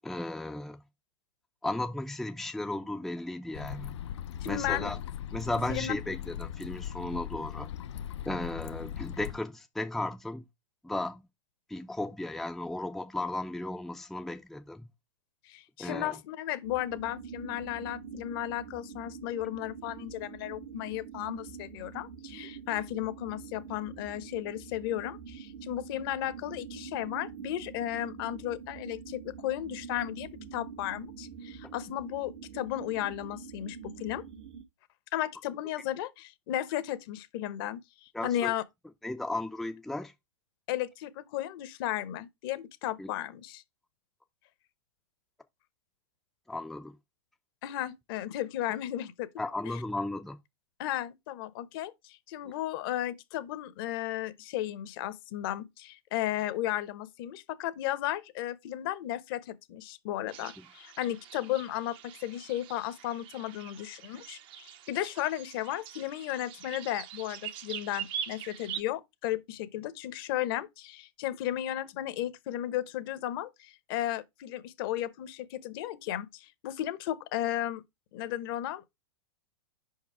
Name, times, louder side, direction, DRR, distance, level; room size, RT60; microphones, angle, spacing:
voice 1, 0.0-0.8 1.6-3.9 4.5-5.0 5.3-7.7 8.3-10.5 10.8-11.3 11.7-14.9 15.8-16.2 38.1-38.5 39.0-40.1 43.0-43.1 46.5-47.0 49.4-50.4 52.4-52.5 60.6-60.7, left 2 dB, ahead, 0.5 m, -35 dB
sound 1, 3.5-9.4, left 10 dB, 75° left, 0.6 m, -39 dB
voice 2, 4.4-4.9 5.7-5.9 15.5-34.2 35.1-38.6 40.7-43.6 47.6-49.3 50.8-77.8 78.1-79.0, left 13 dB, 50° left, 0.9 m, -34 dB
sound 2, 16.6-34.6, right 6 dB, 85° right, 1.6 m, -45 dB
sound 3, 60.3-68.8, right 9 dB, 35° right, 0.7 m, -43 dB
5.2 x 4.7 x 4.7 m
hypercardioid pair, 130°, 15 cm